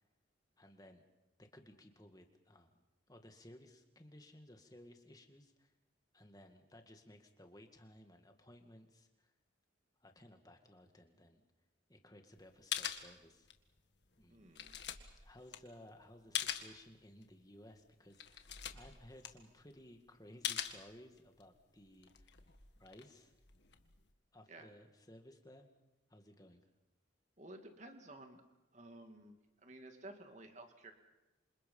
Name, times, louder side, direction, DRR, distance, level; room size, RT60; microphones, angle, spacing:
voice 1, 0.6-1.0 1.4-5.7 6.1-9.3 10.0-11.4 11.9-13.5 14.2-14.5 15.2-22.3 22.8-23.3 24.3-25.7 26.1-26.6, left 1 dB, 20° left, 5 dB, 2.1 m, -58 dB
sound 1, 12.4-12.5 12.7-13.7 14.1-16.8 17.2-17.3 17.8-17.9 18.1-19.8 20.4-21.4 21.9-24.1, left 9 dB, 60° left, 1.8 m, -43 dB
voice 2, 14.3-14.8 24.5-24.7 27.4-28.4 28.7-30.9, right 2 dB, 35° right, 5 dB, 2.4 m, -54 dB
27.0 x 27.0 x 5.6 m, 1.0 s
head